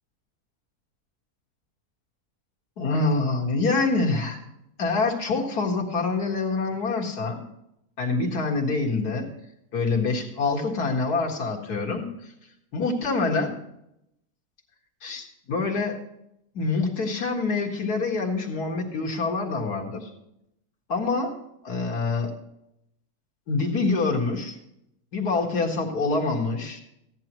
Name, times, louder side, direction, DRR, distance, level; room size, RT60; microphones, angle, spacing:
voice 1, 2.8-4.4 4.8-7.4 8.0-9.3 9.7-12.3 12.7-13.5 15.0-16.0 16.5-20.1 20.9-21.4 21.6-22.3 23.5-24.6 25.1-26.8, left 3 dB, 85° left, 1 dB, 2.3 m, -26 dB
15.5 x 10.5 x 3.0 m, 0.81 s
omnidirectional pair, 1.6 m